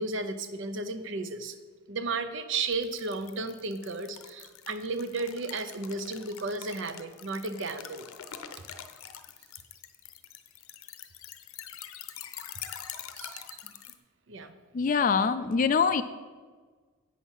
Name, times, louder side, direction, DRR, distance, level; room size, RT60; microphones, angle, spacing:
voice 1, 0.0-1.6 1.9-8.1 13.2-13.7 14.3-14.5, right 3 dB, 60° right, 10 dB, 0.6 m, -34 dB
sound 1, 2.7-14.0, left 10 dB, 75° left, 0.6 m, -45 dB
voice 2, 14.7-16.0, left 5 dB, 40° left, 10 dB, 0.3 m, -24 dB
8.3 x 6.3 x 5.5 m, 1.4 s
head